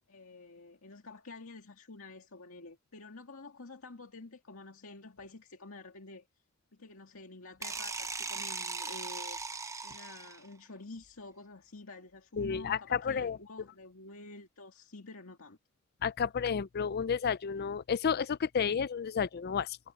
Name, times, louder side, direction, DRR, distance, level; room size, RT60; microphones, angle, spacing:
voice 1, 0.1-6.3 6.7-15.6, left 3 dB, 80° left, 2.2 m, -49 dB
sound 1, 7.6-10.5, right 4 dB, 15° right, 0.8 m, -39 dB
voice 2, 12.4-13.4 16.0-19.8, left 6 dB, 50° left, 0.4 m, -31 dB
head